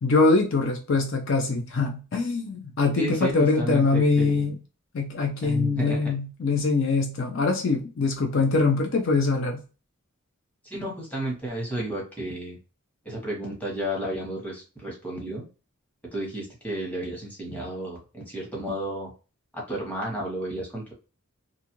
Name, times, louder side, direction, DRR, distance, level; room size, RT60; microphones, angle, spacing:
voice 1, 0.0-4.6 4.9-9.6, left 3 dB, 60° left, 3 dB, 0.5 m, -23 dB
voice 2, 2.9-4.5 5.4-6.1 10.6-12.6 13.0-15.5 16.1-19.1 19.5-20.9, right 1 dB, 5° left, -3 dB, 1.0 m, -32 dB
2.6 x 2.4 x 2.9 m, 0.33 s
head